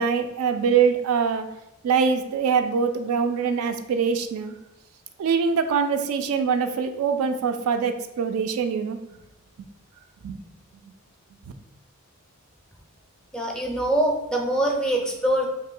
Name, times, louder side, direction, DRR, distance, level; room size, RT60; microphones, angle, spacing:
voice 1, 0.0-1.5 1.8-4.5 5.2-9.0 10.2-10.4, right 6 dB, 70° right, 10 dB, 0.3 m, -23 dB
voice 2, 13.3-15.5, right 1 dB, 5° left, 0 dB, 0.4 m, -23 dB
2.8 x 2.6 x 3.7 m, 0.91 s
head